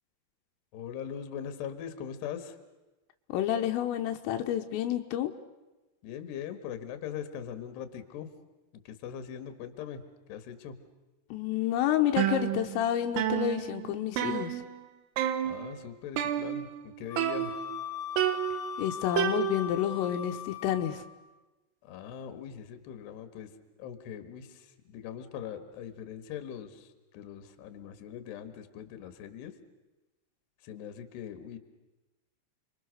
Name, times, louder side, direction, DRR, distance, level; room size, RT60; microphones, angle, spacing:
voice 1, 0.7-2.6 6.0-8.3 8.8-10.0 10.3-10.7 15.4-17.5 21.8-23.5 23.8-26.9 27.1-29.5 30.6-31.6, left 8 dB, 65° left, 10 dB, 3.4 m, -41 dB
voice 2, 3.3-5.3 11.3-14.6 18.8-21.0, left 11 dB, 85° left, 5 dB, 3.7 m, -29 dB
sound 1, 12.2-12.9 13.2-14.9 15.2-15.7 16.2-16.8 17.2-17.8 18.2-19.9, right 11 dB, 90° right, 4.0 m, -31 dB
Wind instrument woodwind instrument, 17.1-21.1, left 8 dB, 35° left, 3.2 m, -39 dB
30.0 x 23.5 x 6.5 m, 1.1 s
omnidirectional pair, 5.8 m